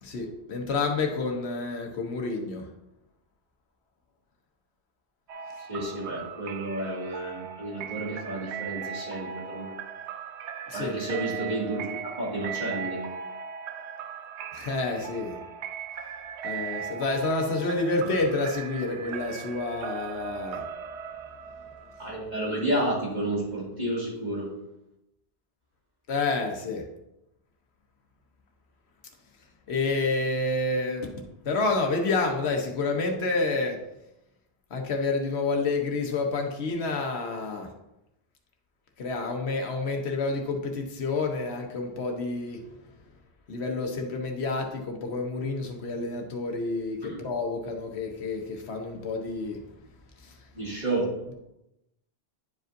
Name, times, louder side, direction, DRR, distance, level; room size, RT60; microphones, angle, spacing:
voice 1, 0.0-2.7 5.8-5.9 10.7-10.9 14.5-15.4 16.4-20.6 26.1-26.9 29.7-31.1 31.4-33.8 34.7-37.7 39.0-42.6 43.5-49.6 50.2-50.4, left 3 dB, 80° left, 3 dB, 1.2 m, -29 dB
sound 1, 5.3-22.9, right 7 dB, 90° right, 0.9 m, -38 dB
voice 2, 5.7-9.8 10.7-13.0 22.0-24.5 47.0-47.2 50.5-51.2, right 1 dB, 40° right, -6 dB, 2.4 m, -31 dB
10.5 x 5.1 x 2.6 m, 0.90 s
omnidirectional pair, 1.1 m